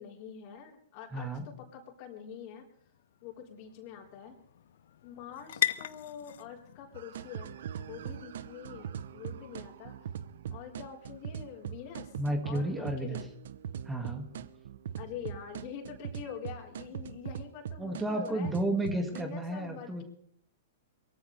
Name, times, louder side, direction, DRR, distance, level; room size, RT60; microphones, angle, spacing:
voice 1, 0.0-2.6 3.2-4.4 5.0-7.5 7.8-9.9 10.5-12.1 12.4-13.3 15.0-18.5 19.0-20.0, left 8 dB, 45° left, 1 dB, 4.4 m, -45 dB
voice 2, 1.1-1.5 12.2-13.2 13.8-14.3 17.8-20.0, right 1 dB, 10° right, 4 dB, 2.1 m, -32 dB
sound 1, 2.0-9.9, left 11 dB, 70° left, 0.8 m, -40 dB
sound 2, 6.9-19.2, right 9 dB, 70° right, 0.8 m, -41 dB
22.5 x 15.0 x 3.4 m, 0.64 s
hypercardioid pair, 115°, 0 cm